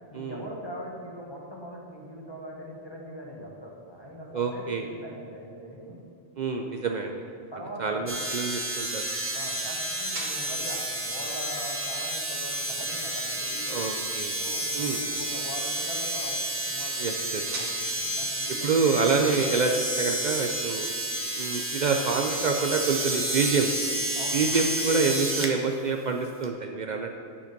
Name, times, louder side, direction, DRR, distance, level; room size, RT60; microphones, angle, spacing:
voice 1, 0.1-6.0 7.5-8.1 9.3-13.8 14.4-18.9 24.1-24.4, equal, 20° left, -3 dB, 1.4 m, -41 dB
voice 2, 4.3-4.9 6.4-7.2 7.8-9.1 13.7-14.4 14.8-15.0 17.0-17.4 18.6-20.9 21.4-23.7 24.3-27.1, right 4 dB, 90° right, 3 dB, 0.4 m, -27 dB
sound 1, 7.4-26.2, right 2 dB, 70° right, 1.9 m, -49 dB
sound 2, 8.1-25.5 26.4-26.5, right 1 dB, 15° right, 0.5 m, -30 dB
9.8 x 5.1 x 5.2 m, 2.6 s
omnidirectional pair, 1.4 m